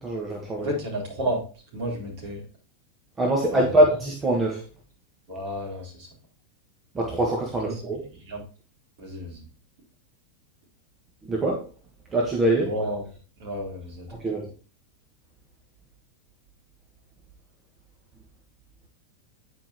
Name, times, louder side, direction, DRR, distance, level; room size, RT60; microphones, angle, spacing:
voice 1, 0.0-0.7 3.2-4.6 6.9-8.0 11.2-11.7 12.1-12.7 14.2-14.5, right 1 dB, 15° right, -1 dB, 1.4 m, -23 dB
voice 2, 0.6-1.4 1.7-2.4 3.5-3.8 5.3-6.1 7.6-7.8 8.1-8.4 9.0-9.5 12.6-13.1 13.4-14.1, equal, 50° right, -3 dB, 3.9 m, -32 dB
9.5 x 5.1 x 2.9 m, 0.37 s
figure-of-eight pair, 90°, 0 cm